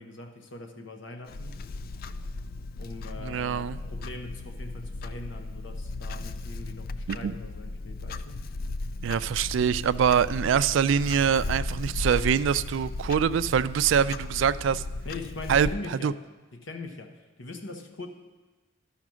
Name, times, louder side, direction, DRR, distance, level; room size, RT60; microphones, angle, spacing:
voice 1, 0.0-1.6 2.8-8.4 15.0-16.2 16.5-18.1, left 2 dB, 65° left, 5 dB, 1.0 m, -41 dB
Clock, 1.3-15.8, left 2 dB, 50° left, 0.3 m, -36 dB
voice 2, 3.2-3.8 7.1-7.3 9.0-14.8 15.5-15.7 16.0-16.1, right 7 dB, 65° right, 15 dB, 0.3 m, -24 dB
12.0 x 5.8 x 6.2 m, 1.2 s
head